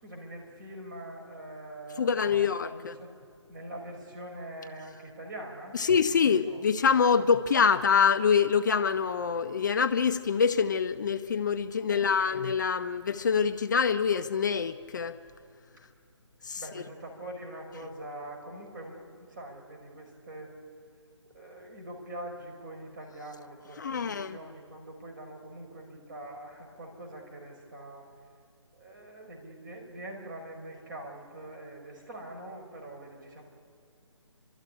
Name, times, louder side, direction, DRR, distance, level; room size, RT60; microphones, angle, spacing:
voice 1, 0.0-3.1 3.5-5.8 6.1-6.6 7.1-7.2 11.9-12.3 16.6-20.6 21.3-28.1 28.7-33.4, right 1 dB, 40° right, 5.3 m, -44 dB
voice 2, 2.0-2.9 5.7-15.2 16.4-16.8 23.8-24.4, left 6 dB, 40° left, 0.6 m, -25 dB
30.0 x 13.0 x 9.9 m
figure-of-eight pair, 160°, 16 cm